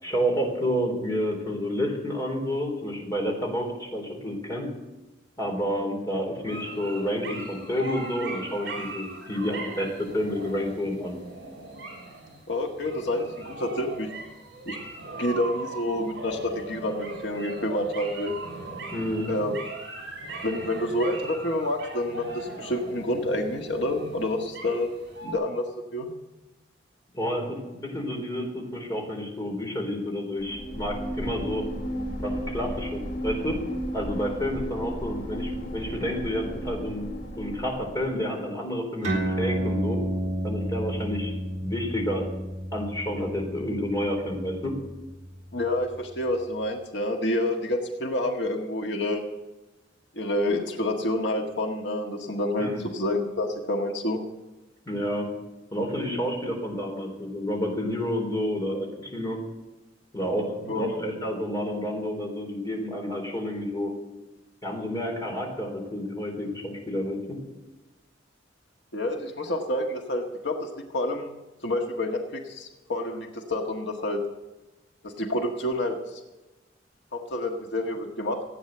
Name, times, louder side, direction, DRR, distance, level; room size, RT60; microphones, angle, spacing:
voice 1, 0.0-4.7 5.4-11.2 18.9-19.3 27.1-31.6 32.2-33.6 33.9-37.1 37.4-40.0 40.4-41.3 41.6-42.2 42.7-44.7 52.6-52.8 54.9-55.3 55.7-59.4 60.1-63.9 64.6-67.2, equal, 20° left, 0 dB, 3.8 m, -29 dB
sound 1, 6.3-25.3, right 2 dB, 60° right, 6.3 m, -39 dB
voice 2, 12.5-14.1 14.6-14.8 15.2-18.3 19.3-19.6 20.4-24.9 25.2-25.6 25.9-26.1 45.5-49.2 50.1-54.2 60.7-61.0 68.9-71.3 71.6-74.2 75.0-76.0 77.1-78.5, left 1 dB, 65° left, 3 dB, 1.6 m, -28 dB
sound 2, 30.4-38.2, equal, 90° left, 3.7 m, -34 dB
sound 3, 39.0-46.0, right 1 dB, 40° right, 4.1 m, -31 dB
16.0 x 9.2 x 7.9 m, 1.1 s
head